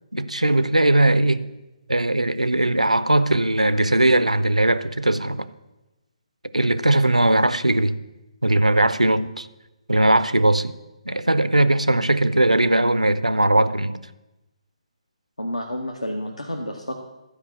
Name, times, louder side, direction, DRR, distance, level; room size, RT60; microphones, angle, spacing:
voice 1, 0.1-1.4 1.9-5.5 6.5-8.0 8.4-9.5 9.9-10.7 11.1-14.0, right 1 dB, 85° right, 0.5 m, -19 dB
voice 2, 15.4-17.0, left 1 dB, 80° left, 1.0 m, -30 dB
12.0 x 5.0 x 6.6 m
figure-of-eight pair, 140°, 4 cm